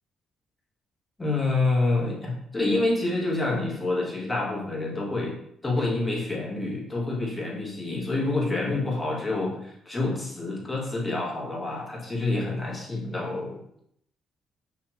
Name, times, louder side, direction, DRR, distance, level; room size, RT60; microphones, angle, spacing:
voice 1, 1.2-5.4 5.6-13.8, left 2 dB, 20° left, -4 dB, 1.5 m, -27 dB
5.6 x 2.9 x 2.9 m, 0.72 s
cardioid pair, 90°, 0 cm